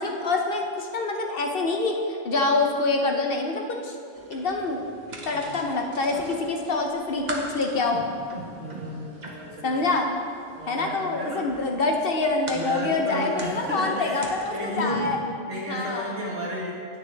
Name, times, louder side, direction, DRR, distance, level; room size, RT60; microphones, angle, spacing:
voice 1, 0.0-4.0 4.3-4.8 5.2-8.0 9.6-10.1 10.7-15.2 15.7-16.2, left 3 dB, 55° left, 2 dB, 0.9 m, -26 dB
sound 1, 4.1-15.2, right 2 dB, 40° right, 1.1 m, -41 dB
voice 2, 8.5-9.8 10.6-11.6 12.5-14.2 14.5-15.1 15.5-16.8, equal, 75° right, -4 dB, 2.1 m, -33 dB
10.5 x 8.9 x 3.3 m, 2.4 s
omnidirectional pair, 1.3 m